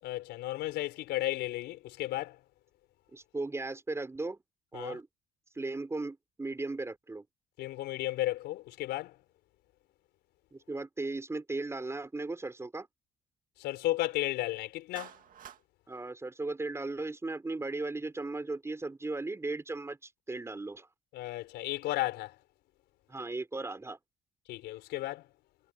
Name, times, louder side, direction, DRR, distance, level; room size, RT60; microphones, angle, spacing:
voice 1, 0.0-2.4 4.7-5.0 7.6-9.2 13.6-15.1 21.1-22.4 24.5-25.3, left 16 dB, 85° left, 4.5 m, -34 dB
voice 2, 3.1-4.4 4.7-5.1 5.6-7.3 10.5-12.9 15.9-20.9 23.1-24.0, right 2 dB, 15° right, 5.5 m, -37 dB
Clapping, 15.0-15.6, right 9 dB, 55° right, 2.1 m, -48 dB
cardioid pair, 110°, 17 cm